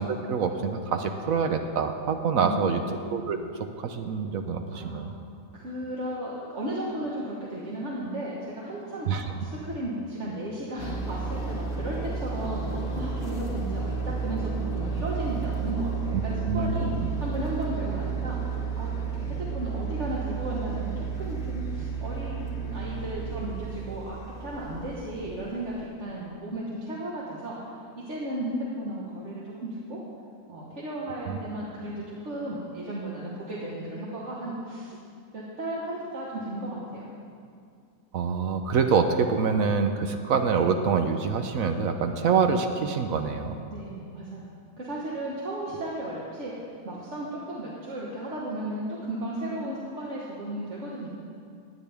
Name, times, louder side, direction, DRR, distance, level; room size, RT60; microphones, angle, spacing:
voice 1, 0.0-2.8 3.1-3.4 3.8-5.1 9.1-9.2 16.5-17.1 31.3-31.4 38.1-43.6, right 5 dB, 65° right, 6 dB, 1.0 m, -26 dB
voice 2, 2.3-2.9 4.7-5.1 5.5-16.9 17.2-18.4 18.8-27.6 28.0-30.0 30.5-34.9 35.3-37.0 43.7-51.1, right 1 dB, 45° right, -6 dB, 1.6 m, -35 dB
sound 1, 10.8-25.9, right 5 dB, 40° left, 1.1 m, -32 dB
17.5 x 10.0 x 3.5 m, 2.3 s
omnidirectional pair, 1.7 m